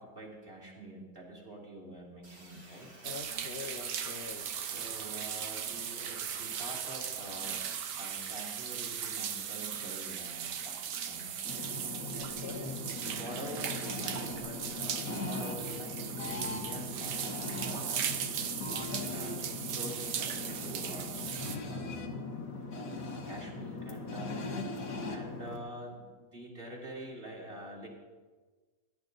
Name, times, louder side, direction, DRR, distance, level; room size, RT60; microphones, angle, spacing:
voice 1, 0.0-2.9 4.6-7.6 7.9-11.3 12.5-18.0 18.7-22.4 22.7-22.9 23.2-24.4 25.0-27.9, right 1 dB, 35° right, -3 dB, 3.2 m, -46 dB
sound 1, 2.2-8.6, right 1 dB, 65° right, 3.4 m, -54 dB
voice 2, 3.0-4.5 12.1-12.8 24.2-24.7, left 5 dB, 45° left, 4 dB, 0.8 m, -44 dB
sound 2, 3.0-21.6, right 8 dB, 85° right, 1.6 m, -38 dB
Radio Dial Tuning, 11.4-25.6, left 3 dB, 75° left, 2.0 m, -40 dB
17.5 x 11.0 x 4.0 m, 1.3 s
omnidirectional pair, 1.8 m